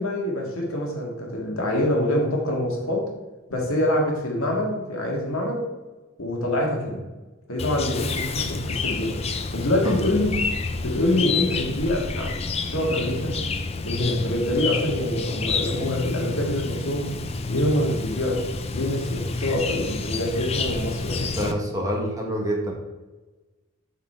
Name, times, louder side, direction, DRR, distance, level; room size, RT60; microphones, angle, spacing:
voice 1, 0.0-3.1 3.5-5.7 6.2-7.0 7.5-9.2 9.5-10.3 10.8-13.4 13.8-17.1 17.5-18.5 18.7-21.5, left 1 dB, 85° left, 0 dB, 1.8 m, -25 dB
Chirp tweet, 7.6-21.5, left 4 dB, 30° left, 0.4 m, -29 dB
voice 2, 21.3-22.7, equal, 15° right, -1 dB, 1.3 m, -27 dB
7.2 x 4.2 x 4.5 m, 1.2 s
head